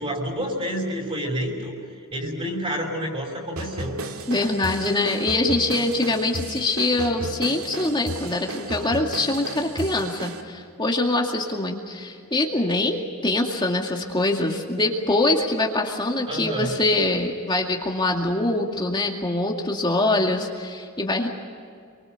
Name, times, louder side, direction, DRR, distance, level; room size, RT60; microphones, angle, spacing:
voice 1, 0.0-1.7 2.1-4.0 16.3-16.7, equal, 25° right, -2 dB, 5.7 m, -29 dB
sound 1, 3.6-10.4, right 1 dB, 80° right, 2.1 m, -34 dB
voice 2, 4.3-21.3, left 2 dB, 20° left, 1 dB, 2.2 m, -24 dB
27.5 x 24.5 x 6.7 m, 2.2 s
head